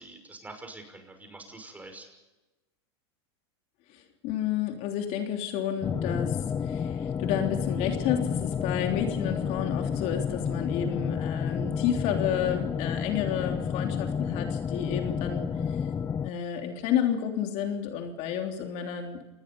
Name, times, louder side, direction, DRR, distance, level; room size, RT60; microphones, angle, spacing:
voice 1, 0.0-2.1, right 2 dB, 10° right, 6 dB, 6.0 m, -45 dB
voice 2, 3.9-15.9 16.2-19.3, left 9 dB, 50° left, 3 dB, 3.3 m, -31 dB
sound 1, 5.8-16.3, left 7 dB, 20° left, 0.9 m, -30 dB
28.0 x 20.0 x 5.4 m, 1.1 s
hypercardioid pair, 110°, 14 cm